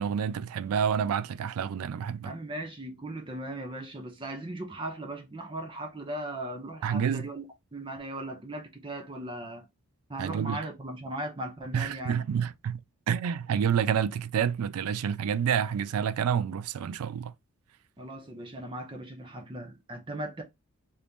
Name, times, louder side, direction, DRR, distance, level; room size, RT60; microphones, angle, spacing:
voice 1, 0.0-2.3 6.8-7.3 10.2-10.6 11.7-12.8 13.1-17.3, right 8 dB, 85° right, 0.3 m, -28 dB
voice 2, 2.2-7.5 7.7-9.7 10.1-12.2 18.0-20.4, right 1 dB, 20° right, 0.6 m, -38 dB
3.0 x 2.7 x 3.4 m
head